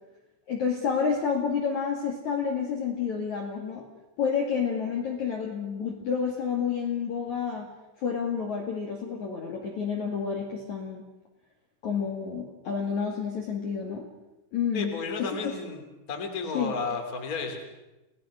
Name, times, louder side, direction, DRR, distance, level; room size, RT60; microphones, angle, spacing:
voice 1, 0.5-3.9 4.2-7.7 8.0-11.0 11.8-14.1 14.5-14.9 15.2-15.3 16.5-16.7, left 6 dB, 50° left, 0 dB, 2.8 m, -29 dB
voice 2, 14.7-17.6, left 4 dB, 20° left, 3 dB, 2.8 m, -33 dB
30.0 x 18.5 x 6.4 m, 1.0 s
omnidirectional pair, 5.6 m